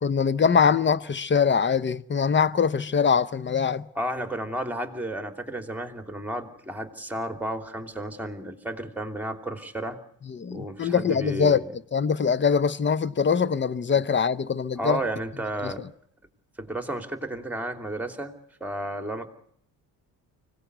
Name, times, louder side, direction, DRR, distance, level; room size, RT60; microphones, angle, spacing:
voice 1, 0.0-3.9 10.3-11.6 11.9-15.0 15.6-15.7, left 6 dB, 30° left, 0.9 m, -23 dB
voice 2, 3.9-10.0 10.5-11.7 13.9-14.0 14.8-15.8 16.6-18.3 18.6-19.3, right 1 dB, 5° right, 3.0 m, -32 dB
24.5 x 18.0 x 8.2 m
supercardioid pair, 80°, 40 cm